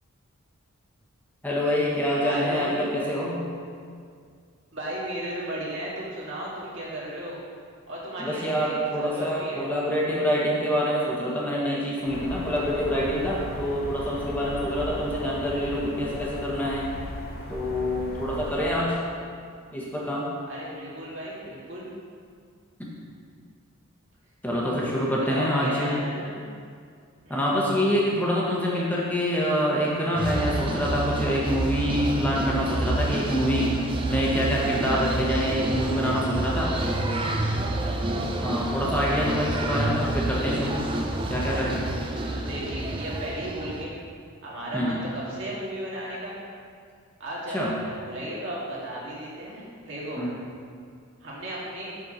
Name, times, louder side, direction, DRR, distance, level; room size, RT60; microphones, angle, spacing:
voice 1, 1.4-3.4 8.2-16.9 17.5-19.0 19.7-20.3 22.8-22.9 24.4-26.0 27.3-33.7 34.1-37.3 38.4-40.8 41.3-41.8 44.7-45.0 47.5-47.7 50.2-50.4, equal, 5° left, -5 dB, 1.1 m, -26 dB
voice 2, 2.2-2.8 4.7-7.4 7.9-9.6 20.5-21.9 25.2-26.4 27.2-27.4 41.3-41.8 42.0-43.9 44.4-46.4 47.2-50.2 51.2-51.9, right 1 dB, 55° right, -6 dB, 2.0 m, -35 dB
sound 1, 12.1-18.8, left 1 dB, 45° left, 0.7 m, -37 dB
sound 2, 30.2-43.9, right 2 dB, 25° right, 0.5 m, -28 dB
6.9 x 4.4 x 6.2 m, 2.2 s
head